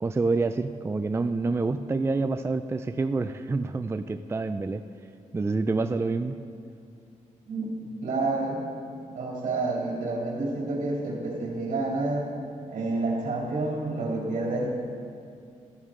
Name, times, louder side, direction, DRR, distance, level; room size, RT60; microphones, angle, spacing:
voice 1, 0.0-4.8 5.3-6.4, right 3 dB, 20° right, 9 dB, 0.3 m, -27 dB
voice 2, 7.4-8.6 9.1-12.3 12.7-14.7, right 2 dB, 80° right, -2 dB, 2.8 m, -29 dB
14.5 x 13.0 x 3.7 m, 2.4 s
wide cardioid pair, 110°, 13 cm